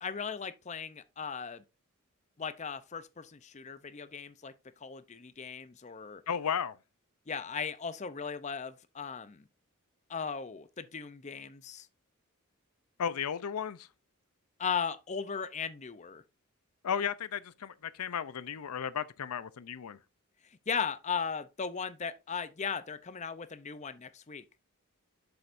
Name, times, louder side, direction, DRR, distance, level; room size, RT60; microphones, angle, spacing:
voice 1, 0.0-1.6 2.4-4.5 4.8-6.2 7.3-9.4 10.1-11.9 14.6-16.2 20.7-24.4, left 6 dB, 30° left, 0.5 m, -37 dB
voice 2, 6.3-6.8 13.0-13.9 16.8-20.0, left 7 dB, 85° left, 0.5 m, -34 dB
7.9 x 7.1 x 2.6 m
head